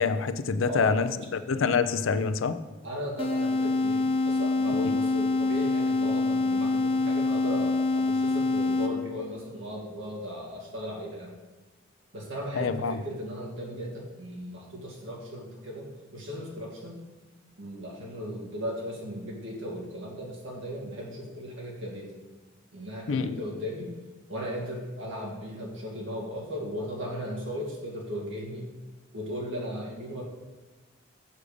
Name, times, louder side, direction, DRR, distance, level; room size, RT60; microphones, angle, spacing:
voice 1, 0.0-2.6 12.5-12.9 23.1-23.4, left 5 dB, 85° left, 12 dB, 0.5 m, -26 dB
voice 2, 0.6-1.0 2.8-11.3 12.1-17.0 17.6-22.1 22.7-23.9 24.3-28.7 29.1-30.2, equal, 75° right, -3 dB, 2.2 m, -36 dB
sound 1, 3.2-9.2, left 3 dB, 30° left, 0.7 m, -26 dB
6.5 x 5.0 x 6.8 m, 1.2 s
head